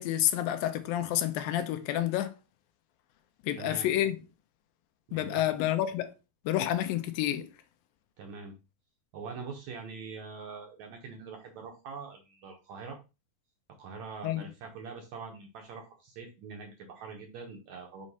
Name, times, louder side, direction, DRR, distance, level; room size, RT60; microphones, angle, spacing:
voice 1, 0.0-2.3 3.4-4.2 5.1-6.1 6.5-7.5 14.2-14.5, left 12 dB, 80° left, 2.3 m, -29 dB
voice 2, 3.6-3.9 5.1-5.5 8.2-8.5 9.1-13.0 13.8-18.1, right 5 dB, 65° right, 1.9 m, -43 dB
6.4 x 3.1 x 5.4 m
omnidirectional pair, 4.2 m